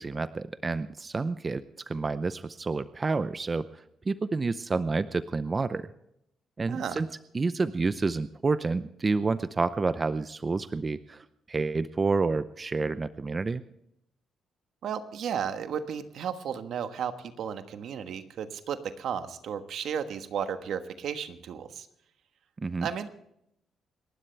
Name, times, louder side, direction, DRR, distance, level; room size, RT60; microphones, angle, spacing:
voice 1, 0.0-5.9 6.6-7.1 7.3-13.6 22.6-22.9, right 3 dB, 30° right, 13 dB, 0.6 m, -29 dB
voice 2, 6.7-7.0 14.8-21.9 22.8-23.1, right 8 dB, 70° right, 9 dB, 1.3 m, -34 dB
28.5 x 12.0 x 3.4 m, 0.77 s
cardioid pair, 90°, 0 cm